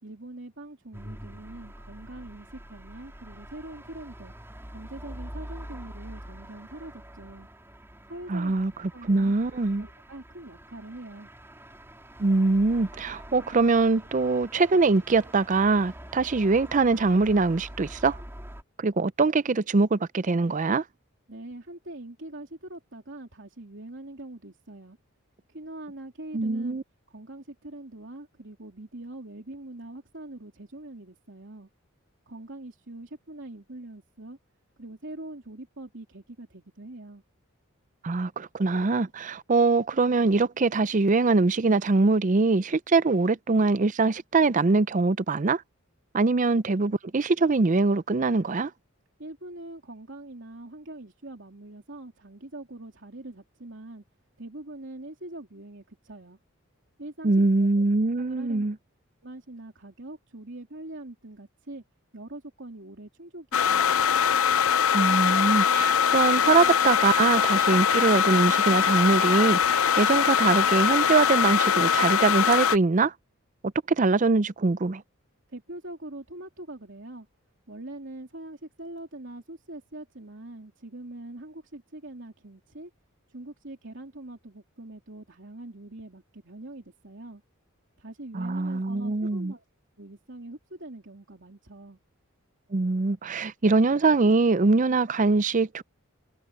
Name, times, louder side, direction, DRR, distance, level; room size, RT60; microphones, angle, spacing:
voice 1, 0.0-4.3 4.7-7.5 8.1-8.5 8.9-9.3 9.8-11.3 21.3-25.0 25.5-26.8 27.1-31.7 32.3-34.4 34.8-37.2 49.2-54.0 54.4-56.4 57.0-57.3 57.6-57.8 58.2-58.6 59.2-61.8 62.1-64.1 75.5-77.3 77.7-82.9 83.3-87.4 88.0-89.6 90.0-92.0, right 1 dB, 60° right, 3.4 m, -43 dB
sound 1, 0.9-18.6, equal, 10° right, 3.5 m, -45 dB
voice 2, 8.3-8.7 9.1-9.9 12.2-18.2 18.8-20.8 26.3-26.8 38.0-45.6 46.1-48.7 57.2-58.8 64.9-73.1 73.9-75.0 88.3-89.5 92.7-95.8, right 3 dB, 35° right, 0.5 m, -23 dB
sound 2, 63.5-72.8, left 8 dB, 75° left, 0.5 m, -22 dB
head